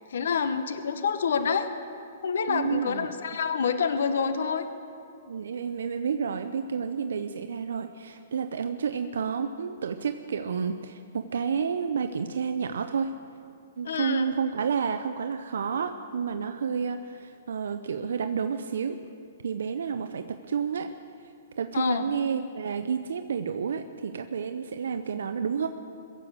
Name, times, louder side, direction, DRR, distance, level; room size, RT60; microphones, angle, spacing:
voice 1, 0.1-1.7 2.2-4.6 13.8-14.3 21.7-22.1, left 6 dB, 70° left, 9 dB, 1.0 m, -27 dB
voice 2, 2.5-3.1 5.3-13.1 13.8-19.0 19.4-20.9 21.6-25.7, right 6 dB, 80° right, 8 dB, 0.6 m, -30 dB
22.0 x 7.7 x 7.9 m, 2.5 s
hypercardioid pair, 150°, 0 cm